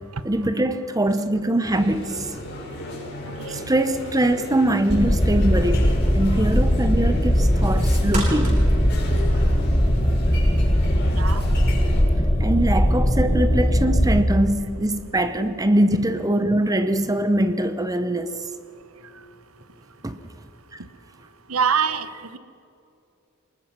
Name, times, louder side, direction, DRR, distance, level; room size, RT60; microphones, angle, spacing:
voice 1, 0.2-2.3 3.5-8.7 12.4-18.4 20.0-20.2 20.7-20.8, right 1 dB, 15° right, 10 dB, 0.8 m, -22 dB
sound 1, 1.6-12.0, left 1 dB, 55° left, 6.5 m, -35 dB
sound 2, 4.9-14.2, equal, 25° left, 1.4 m, -20 dB
sound 3, 7.3-10.0 10.5-10.6, right 2 dB, 35° right, 7.2 m, -35 dB
voice 2, 21.5-22.1, right 6 dB, 85° right, 13 dB, 1.1 m, -23 dB
24.0 x 20.5 x 6.0 m, 2.7 s
head